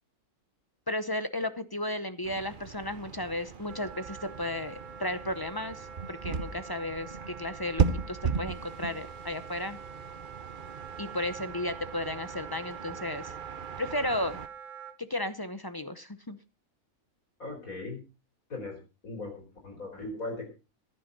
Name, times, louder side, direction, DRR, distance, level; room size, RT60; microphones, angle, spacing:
voice 1, 0.9-9.8 11.0-13.3 13.8-14.4 15.0-16.4, left 1 dB, 30° left, 12 dB, 0.4 m, -34 dB
sound 1, 2.2-14.5, right 5 dB, 40° right, 0.8 m, -36 dB
Wind instrument woodwind instrument, 3.7-15.0, right 6 dB, 60° right, 1.5 m, -45 dB
voice 2, 17.4-18.0 18.5-18.8 19.0-20.5, left 2 dB, 65° left, 3 dB, 5.1 m, -38 dB
15.5 x 11.0 x 4.1 m, 0.31 s
omnidirectional pair, 1.6 m